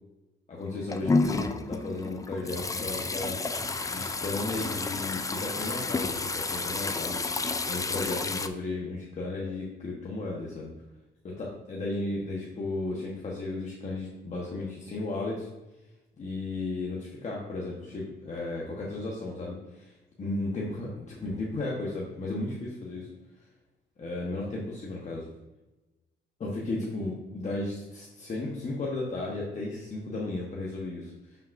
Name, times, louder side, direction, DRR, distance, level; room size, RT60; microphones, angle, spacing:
voice 1, 0.5-3.4 3.9-7.2 7.7-10.7 11.2-15.5 16.2-23.1 24.0-25.3 26.4-31.4, left 2 dB, 35° left, -4 dB, 1.2 m, -34 dB
sound 1, 0.7-8.5, left 3 dB, 15° left, 0.4 m, -30 dB
7.1 x 5.7 x 2.6 m, 1.1 s
cardioid pair, 90°, 20 cm